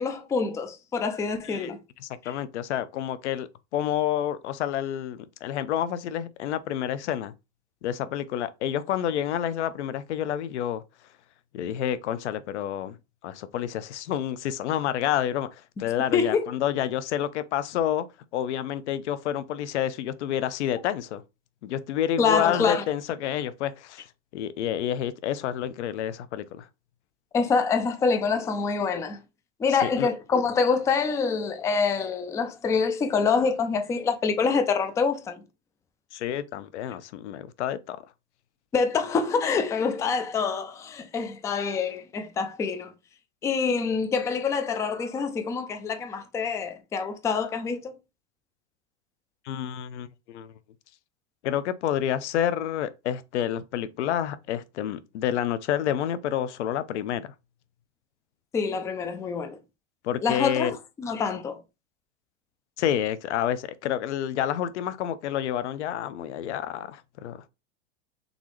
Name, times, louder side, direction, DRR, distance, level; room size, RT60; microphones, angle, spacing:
voice 1, 0.0-1.8 2.2-2.3 16.1-16.5 22.2-22.8 27.3-29.2 29.6-35.4 38.7-42.9 43.4-47.9 58.5-59.6 60.2-61.6, left 5 dB, 10° left, 0.3 m, -26 dB
voice 2, 2.0-7.3 7.8-10.8 11.5-12.9 13.2-18.1 18.3-21.2 21.6-24.0 24.3-26.7 29.8-30.1 36.1-38.0 49.5-50.5 51.4-57.3 60.0-60.8 62.8-67.4, left 10 dB, 85° left, 0.6 m, -29 dB
4.0 x 3.5 x 3.0 m
supercardioid pair, 125°, 34 cm